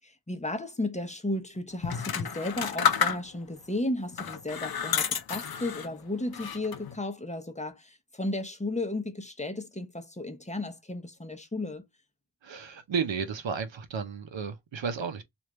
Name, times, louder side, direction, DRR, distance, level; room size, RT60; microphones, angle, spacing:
voice 1, 0.0-11.8, left 2 dB, 15° left, 0.8 m, -34 dB
sound 1, 1.8-3.6 4.1-5.9 6.3-7.0, left 7 dB, 50° left, 0.6 m, -30 dB
voice 2, 12.4-15.2, right 6 dB, 70° right, 0.7 m, -33 dB
3.2 x 2.5 x 2.9 m
cardioid pair, 50°, 46 cm